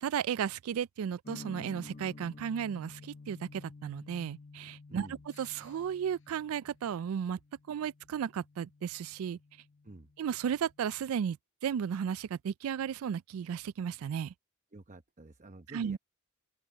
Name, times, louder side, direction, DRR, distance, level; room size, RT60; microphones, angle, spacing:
voice 1, 0.0-5.1 5.4-7.4 7.7-9.4 10.2-11.4 11.6-14.3 15.7-16.0, right 8 dB, 80° right, 0.3 m, -34 dB
sound 1, 1.2-11.0, left 3 dB, 40° left, 0.8 m, -52 dB
voice 2, 4.9-5.2 9.8-10.1 14.7-16.0, right 2 dB, 35° right, 0.9 m, -49 dB
sound 2, 5.3-6.9, left 11 dB, 65° left, 6.7 m, -64 dB
open air
head